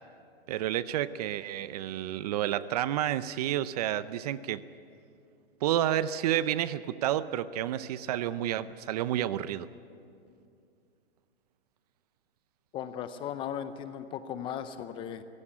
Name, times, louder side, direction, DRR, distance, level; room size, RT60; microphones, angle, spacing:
voice 1, 0.5-4.6 5.6-9.7, right 12 dB, 40° right, 15 dB, 0.6 m, -30 dB
voice 2, 12.7-15.2, left 9 dB, 15° left, 11 dB, 0.6 m, -37 dB
23.0 x 16.5 x 10.0 m, 2.5 s
hypercardioid pair, 145°, 32 cm